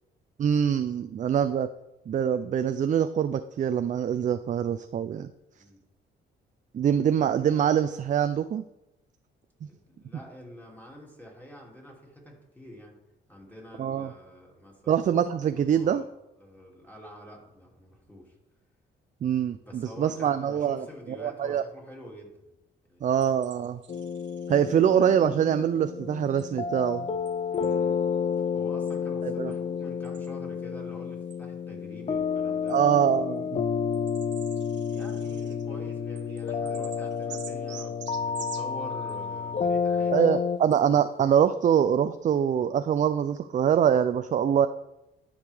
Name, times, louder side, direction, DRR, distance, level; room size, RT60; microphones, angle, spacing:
voice 1, 0.4-1.7 2.1-5.3 6.7-8.6 13.8-14.1 14.9-16.0 19.2-21.6 23.0-23.8 24.5-27.1 29.2-29.5 32.7-33.6 40.1-44.7, right 8 dB, 40° right, 11 dB, 0.4 m, -24 dB
voice 2, 5.5-5.8 9.6-13.0 13.3-15.1 15.6-16.1 16.4-18.3 19.6-22.4 22.8-23.1 27.5-28.0 28.5-32.8 34.9-40.2, equal, 10° left, -2 dB, 2.7 m, -46 dB
sound 1, 23.2-24.6 26.4-26.5 27.3-27.8 28.9-29.0 29.5-29.6 30.0-30.3 31.3-31.4 32.7-32.8 33.4-33.5 33.9-39.2 40.2-40.3 40.7-40.8, right 10 dB, 65° right, 0.8 m, -48 dB
sound 2, 23.9-40.6, left 6 dB, 30° left, 0.4 m, -30 dB
12.5 x 5.0 x 3.5 m, 0.91 s
cardioid pair, 90°, 20 cm